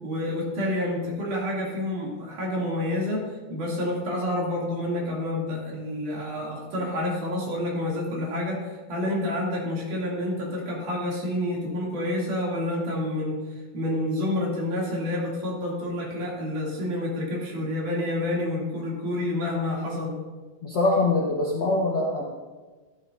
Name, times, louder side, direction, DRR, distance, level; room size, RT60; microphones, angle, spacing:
voice 1, 0.0-3.2 3.5-13.4 13.7-20.1, left 1 dB, 60° right, -4 dB, 3.9 m, -28 dB
voice 2, 20.6-22.2, left 2 dB, 80° left, -3 dB, 1.0 m, -23 dB
13.5 x 12.0 x 2.5 m, 1.3 s
omnidirectional pair, 4.1 m